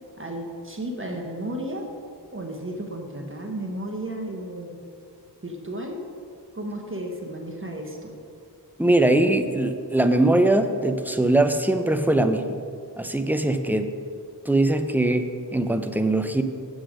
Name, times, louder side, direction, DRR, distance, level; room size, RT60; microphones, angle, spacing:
voice 1, 0.2-1.9 2.3-4.8 5.4-6.0 6.5-8.2, right 1 dB, 30° right, 1 dB, 1.2 m, -33 dB
voice 2, 8.8-12.6 13.0-13.9 14.4-16.4, right 1 dB, 5° right, 7 dB, 0.7 m, -21 dB
8.0 x 7.8 x 5.1 m, 2.4 s
wide cardioid pair, 45°, 41 cm